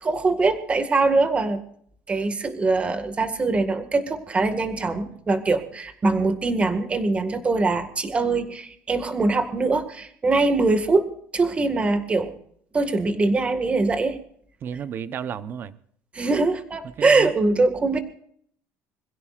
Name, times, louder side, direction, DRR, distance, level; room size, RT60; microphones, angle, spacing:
voice 1, 0.0-1.6 2.1-11.1 11.3-12.3 12.7-14.2 16.1-18.0, right 3 dB, 20° right, 1.9 m, -22 dB
voice 2, 14.6-15.7 17.0-17.3, right 8 dB, 40° right, 0.9 m, -32 dB
26.5 x 16.0 x 2.5 m
cardioid pair, 140°, 6 cm